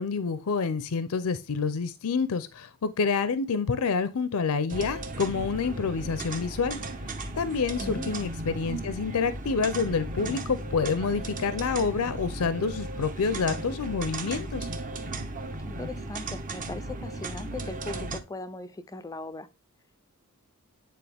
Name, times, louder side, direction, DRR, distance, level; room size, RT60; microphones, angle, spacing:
voice 1, 0.0-6.8 7.4-14.7, left 5 dB, 75° left, 0.5 m, -28 dB
sound 1, 4.7-18.2, right 2 dB, 40° right, 0.9 m, -36 dB
voice 2, 7.8-8.2 15.6-19.5, left 2 dB, 15° left, 0.4 m, -39 dB
9.3 x 3.8 x 3.4 m
head